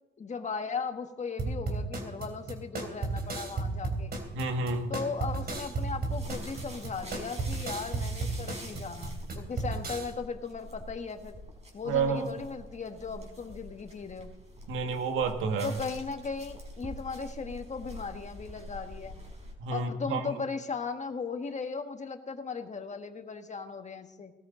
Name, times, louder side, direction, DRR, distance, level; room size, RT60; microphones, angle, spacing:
voice 1, 0.2-4.1 4.9-11.3 11.7-14.3 15.6-19.2 19.7-24.3, left 5 dB, 35° left, 6 dB, 1.5 m, -37 dB
sound 1, 1.4-10.1, right 3 dB, 50° right, 3.3 m, -34 dB
sound 2, 2.8-19.5, equal, 35° right, 4.4 m, -46 dB
voice 2, 4.3-4.9 11.9-12.4 14.7-15.8 19.6-20.4, right 4 dB, 85° right, 6 dB, 1.7 m, -30 dB
18.5 x 13.5 x 3.9 m, 1.0 s
cardioid pair, 90°, 20 cm